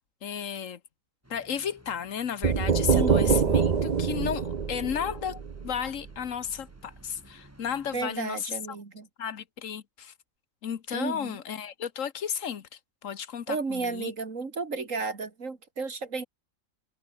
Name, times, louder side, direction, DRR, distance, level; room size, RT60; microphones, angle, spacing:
voice 1, 0.2-0.8 1.3-8.8 9.2-10.1 10.6-14.1, left 8 dB, 70° left, 1.4 m, -34 dB
sound 1, 1.2-8.1, right 1 dB, 10° right, 3.9 m, -56 dB
sound 2, 2.4-6.2, right 6 dB, 35° right, 0.9 m, -25 dB
voice 2, 2.9-3.5 7.9-9.1 10.9-11.4 13.5-16.2, right 4 dB, 70° right, 2.9 m, -33 dB
omnidirectional pair, 1.4 m